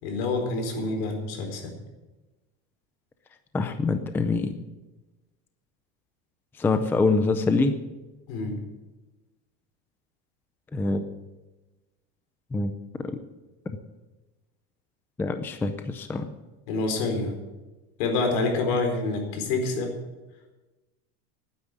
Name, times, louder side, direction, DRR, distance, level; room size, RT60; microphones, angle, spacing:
voice 1, 0.0-1.7 8.3-8.6 16.7-17.3 18.0-19.9, left 3 dB, 70° left, 4 dB, 4.4 m, -27 dB
voice 2, 3.5-4.6 6.6-7.7 10.7-11.0 12.5-12.7 15.2-16.3, left 3 dB, 5° left, 8 dB, 0.5 m, -25 dB
11.5 x 9.6 x 9.7 m, 1.1 s
cardioid pair, 170°, 31 cm